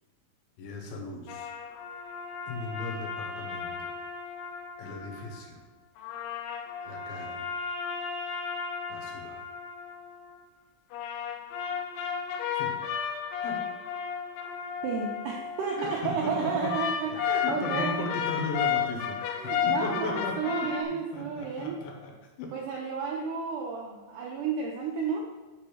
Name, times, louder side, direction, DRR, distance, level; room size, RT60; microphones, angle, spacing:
voice 1, 0.6-1.5 2.5-3.9 4.8-5.6 6.9-7.5 8.9-9.4 12.6-12.8 13.4-13.6 15.8-16.8 17.0-19.3 19.7-20.7 21.1-22.1 22.4-22.5, left 2 dB, 75° left, 2 dB, 2.7 m, -37 dB
sound 1, 1.3-5.4 6.0-10.4 10.9-16.0 16.6-20.8, left 7 dB, 90° left, 2.7 m, -33 dB
voice 2, 14.8-18.1 19.4-21.8 22.5-25.3, right 5 dB, 80° right, -1 dB, 1.9 m, -32 dB
5.3 x 5.1 x 6.1 m, 1.2 s
omnidirectional pair, 4.5 m